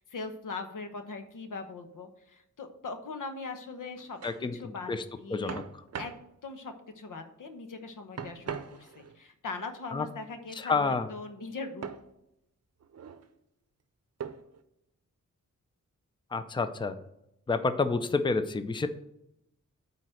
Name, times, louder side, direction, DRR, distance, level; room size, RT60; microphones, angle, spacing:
voice 1, 0.0-4.9 5.2-5.6 6.0-6.1 6.4-12.0, left 3 dB, 85° left, 7 dB, 1.1 m, -41 dB
sound 1, 3.8-4.4 5.5-6.2 8.2-9.2 11.8-12.1 12.8-13.3 14.2-14.6, right 7 dB, 55° right, 0.6 m, -40 dB
voice 2, 4.2-4.5 4.9-5.0 5.3-5.6 9.9-10.1 10.6-11.1 16.3-17.0 17.5-18.9, left 4 dB, 15° left, 11 dB, 0.5 m, -28 dB
8.9 x 4.1 x 6.3 m, 0.83 s
wide cardioid pair, 105°, 31 cm